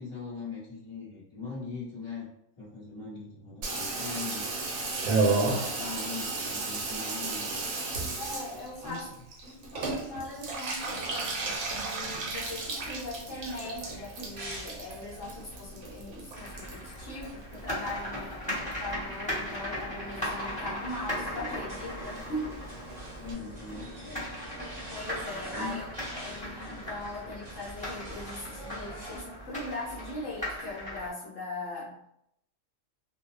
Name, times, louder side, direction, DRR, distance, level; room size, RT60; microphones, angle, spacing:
voice 1, 0.0-2.3 2.6-4.5 5.1-7.7 8.8-9.0 23.0-24.2 25.2-25.8, left 4 dB, 30° left, -7 dB, 1.2 m, -41 dB
Water tap faucet / Bathtub (filling or washing), 3.6-18.2 18.4-19.2 19.5-19.6 19.8-19.9 20.1-20.5 20.8-20.9 21.1-21.2 21.5-21.6 21.8-21.9 22.1-22.2 22.5-22.6 22.9-23.0 23.3-23.4, right 3 dB, 85° right, 1.0 m, -33 dB
voice 2, 5.5-6.0 8.2-9.1 9.4-22.6 24.9-32.1, left 1 dB, 75° left, -5 dB, 1.0 m, -40 dB
sound 1, 11.4-29.2, right 1 dB, 40° right, 0.7 m, -47 dB
sound 2, 16.3-31.1, equal, 5° left, 0.9 m, -38 dB
2.6 x 2.1 x 2.4 m, 0.77 s
omnidirectional pair, 1.3 m